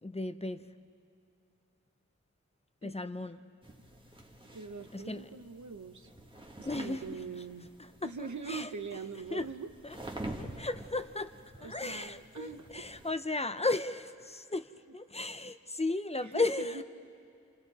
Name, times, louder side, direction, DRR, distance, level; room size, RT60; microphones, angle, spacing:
voice 1, 0.0-0.7 2.8-3.4 4.9-5.3 6.6-7.2 7.8-8.7 9.3-9.5 9.8-10.0 10.4-11.3 11.6-16.8, left 2 dB, 20° left, 10 dB, 0.8 m, -35 dB
sound 1, 3.6-13.1, right 1 dB, 15° right, 1.5 m, -48 dB
voice 2, 4.5-6.1 6.6-7.7 8.0-9.7 11.6-12.9 16.2-16.8, right 5 dB, 80° right, 7 dB, 1.0 m, -42 dB
28.5 x 27.0 x 4.2 m, 2.4 s
wide cardioid pair, 55°, 30 cm